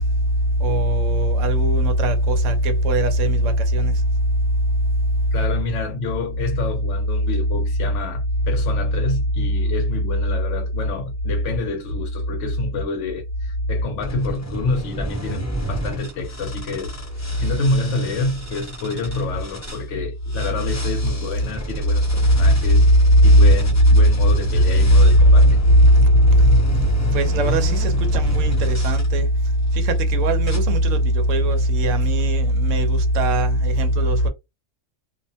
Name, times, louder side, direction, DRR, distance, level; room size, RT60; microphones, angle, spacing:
voice 1, 0.6-3.9 23.2-23.4 25.8-26.6 27.1-29.3 29.7-34.3, right 1 dB, 75° right, 1.0 m, -18 dB
voice 2, 5.3-16.9 17.4-22.9 23.2-25.6, left 3 dB, 70° left, 1.0 m, -28 dB
sound 1, 14.0-19.8 20.3-29.1 29.7-30.0 30.4-30.6, right 1 dB, 15° left, 0.6 m, -30 dB
2.5 x 2.1 x 2.6 m
omnidirectional pair, 1.3 m